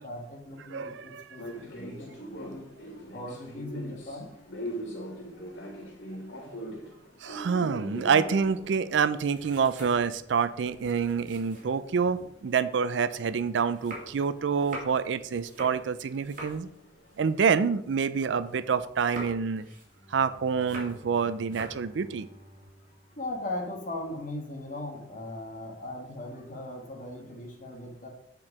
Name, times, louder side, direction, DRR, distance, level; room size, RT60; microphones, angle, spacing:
voice 1, 0.0-2.7 3.1-4.6 11.5-11.6 23.2-28.1, left 1 dB, 45° left, 1 dB, 1.6 m, -39 dB
voice 2, 0.7-1.3 7.2-16.7 17.2-19.6 20.1-22.3, right 6 dB, 70° right, 14 dB, 0.4 m, -27 dB
sound 1, 1.4-12.2 12.5-17.7, equal, 85° left, 1.8 m, -43 dB
sound 2, 8.5-12.3 12.7-18.5 18.8-21.1 21.4-21.9, right 1 dB, 45° right, 2.3 m, -45 dB
Bowed string instrument, 19.8-24.1, equal, 25° left, 2.8 m, -54 dB
7.7 x 4.5 x 4.8 m, 0.73 s
head